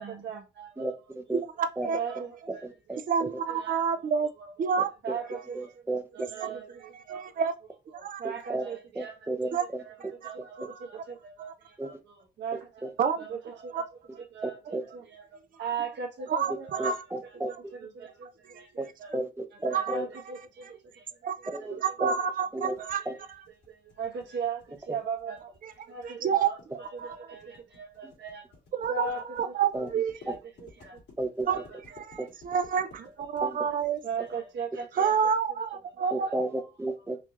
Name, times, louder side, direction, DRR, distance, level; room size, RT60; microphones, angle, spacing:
voice 1, 0.0-1.1 1.8-2.7 3.4-4.1 4.4-4.7 5.0-5.8 6.1-7.5 7.9-19.2 19.5-21.2 21.6-22.3 22.8-23.2 23.7-28.5 28.7-29.9 30.2-31.0 31.5-32.0 33.0-33.7 34.0-35.2 36.0-36.5, right 6 dB, 85° right, 1.2 m, -39 dB
voice 2, 0.8-1.4 1.8-1.9 2.6-3.3 5.5-6.3 8.2-8.6 9.0-9.8 11.8-11.9 12.8-12.9 14.4-14.8 16.8-17.5 18.8-18.9 19.1-20.0 21.5-22.1 22.5-22.8 23.1-23.2 29.7-29.9 30.3-30.4 31.2-31.5 32.2-32.3 33.4-33.6 36.1-37.2, right 2 dB, 15° right, 0.7 m, -33 dB
voice 3, 1.3-2.0 3.1-4.3 4.6-4.9 7.1-7.5 8.0-8.2 9.5-9.6 10.6-10.7 13.0-13.2 13.7-13.8 16.3-17.0 19.7-20.0 21.2-21.3 21.8-23.0 26.1-26.5 27.0-27.2 28.8-30.1 31.5-31.6 32.0-34.0 35.0-36.3, right 7 dB, 50° right, 0.5 m, -28 dB
sound 1, 22.8-34.3, left 4 dB, 80° left, 2.3 m, -54 dB
4.6 x 2.8 x 2.4 m
cardioid pair, 120°, 18 cm